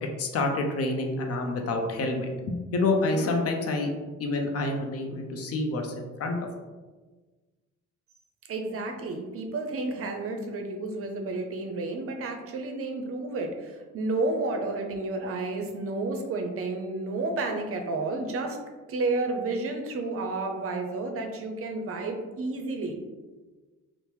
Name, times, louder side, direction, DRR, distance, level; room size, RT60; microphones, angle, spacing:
voice 1, 0.2-3.9 4.2-6.4, left 2 dB, 55° left, 3 dB, 0.5 m, -28 dB
voice 2, 8.5-18.6 18.9-23.0, right 2 dB, 50° right, 4 dB, 0.5 m, -31 dB
2.9 x 2.0 x 3.1 m, 1.3 s
cardioid pair, 90°, 30 cm